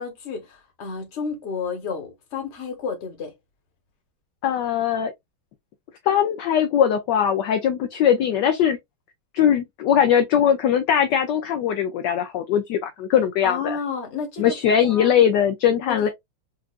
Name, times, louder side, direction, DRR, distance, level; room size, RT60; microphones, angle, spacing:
voice 1, 0.0-3.3 13.4-15.2 15.9-16.0, left 5 dB, 40° left, 1.2 m, -31 dB
voice 2, 4.4-5.1 6.1-8.8 9.3-13.8 14.4-16.1, left 9 dB, 70° left, 1.0 m, -20 dB
4.5 x 2.5 x 2.3 m
omnidirectional pair, 2.3 m